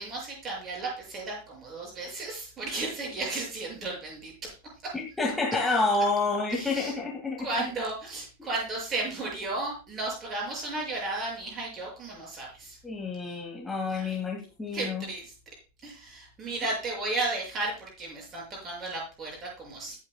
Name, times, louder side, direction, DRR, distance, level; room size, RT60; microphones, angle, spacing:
voice 1, 0.0-4.6 4.8-5.0 6.5-6.9 7.4-12.8 13.9-14.2 14.7-15.3 15.8-20.0, right 2 dB, 25° right, -2 dB, 7.1 m, -34 dB
voice 2, 5.2-7.5 12.8-15.0, left 3 dB, 5° left, -1 dB, 2.3 m, -28 dB
20.5 x 9.0 x 2.3 m, 0.33 s
figure-of-eight pair, 90°, 0 cm